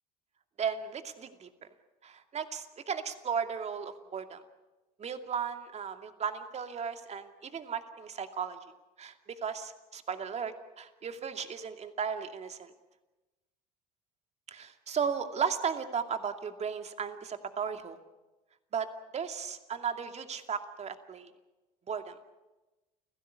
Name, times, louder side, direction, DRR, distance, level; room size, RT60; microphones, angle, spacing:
voice 1, 0.6-1.5 2.0-4.4 5.0-8.6 9.0-12.7 14.5-18.0 18.7-18.9 19.1-21.3 21.9-22.2, right 6 dB, 35° right, 7 dB, 2.5 m, -35 dB
29.5 x 16.5 x 8.3 m, 1.1 s
hypercardioid pair, 70°, 19 cm